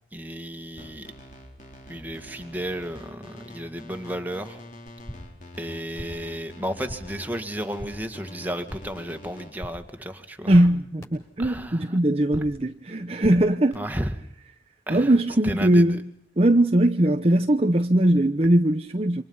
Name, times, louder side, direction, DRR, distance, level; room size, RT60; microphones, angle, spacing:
voice 1, 0.1-1.1 1.9-4.6 5.6-10.5 11.4-12.0 13.8-14.1 14.9-15.2 15.4-16.0, equal, 10° right, 2.0 m, -33 dB
sound 1, 0.8-9.5, left 1 dB, 45° left, 4.2 m, -45 dB
sound 2, 4.9-5.4 5.7-6.3 6.6-7.2 7.5-8.1 8.4-9.1 9.3-10.0 10.2-11.7 12.0-12.7 12.9-13.7, equal, 20° left, 7.1 m, -42 dB
voice 2, 10.5-13.8 14.9-16.1 16.4-19.2, right 1 dB, 35° right, 0.9 m, -20 dB
28.0 x 26.0 x 5.5 m
head